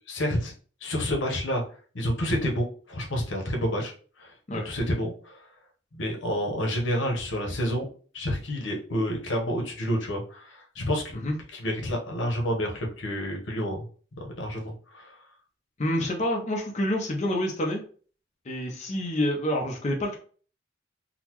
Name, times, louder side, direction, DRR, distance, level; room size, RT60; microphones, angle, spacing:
voice 1, 0.1-0.5 0.8-1.6 1.9-3.9 4.2-4.3 4.6-5.4 5.9-7.8 8.1-11.1 11.5-13.8 14.2-15.1, equal, 85° left, 1 dB, 0.9 m, -29 dB
voice 2, 15.8-17.8 18.5-20.2, left 1 dB, 40° left, 0 dB, 0.6 m, -27 dB
3.9 x 2.0 x 2.9 m, 0.41 s
head